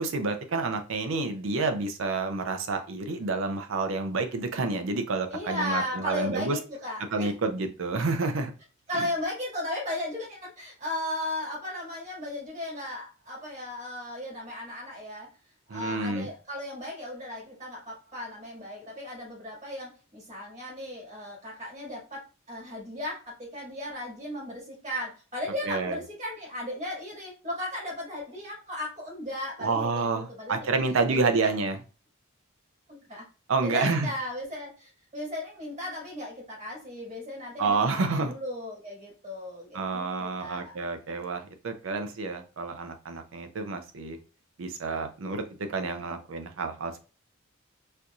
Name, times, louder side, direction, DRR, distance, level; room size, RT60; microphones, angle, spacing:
voice 1, 0.0-6.6 7.1-8.5 8.9-9.1 15.7-16.3 25.6-26.0 29.6-31.8 33.5-34.1 37.6-38.3 39.7-44.2 44.6-45.4 45.7-46.9, right 3 dB, 75° right, 7 dB, 0.5 m, -29 dB
voice 2, 5.3-7.3 8.9-15.3 15.7-30.7 31.1-31.5 32.9-33.3 33.6-40.7, left 1 dB, 35° right, -3 dB, 1.8 m, -36 dB
4.3 x 2.6 x 2.4 m, 0.33 s
head